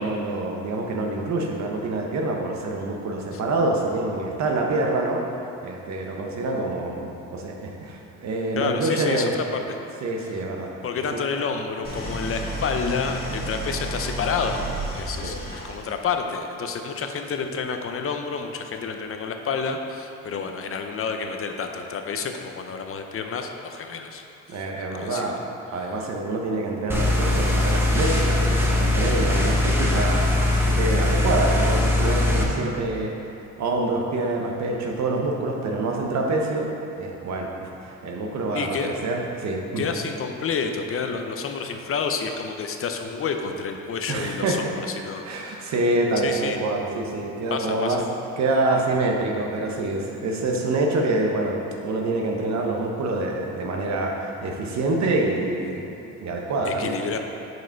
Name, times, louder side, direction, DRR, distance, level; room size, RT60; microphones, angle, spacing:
voice 1, 0.0-5.3 5.6-9.3 10.0-10.7 11.1-11.2 15.2-15.3 24.5-25.4 25.7-33.3 33.6-39.8 44.1-44.6 45.2-48.0 48.4-55.9 56.2-56.9, right 2 dB, 65° right, 1 dB, 1.0 m, -26 dB
voice 2, 8.6-9.8 10.8-14.6 14.9-24.2 24.5-24.7 24.9-25.4 38.5-38.9 39.8-45.7 46.2-46.6 47.5-48.0 56.7-57.2, left 5 dB, 45° left, 5 dB, 0.7 m, -29 dB
Idling, 11.8-16.1, right 1 dB, 30° left, 1.5 m, -32 dB
sound 1, 26.9-32.4, left 2 dB, 10° right, 1.0 m, -21 dB
6.3 x 5.0 x 4.5 m, 2.8 s
cardioid pair, 90°, 30 cm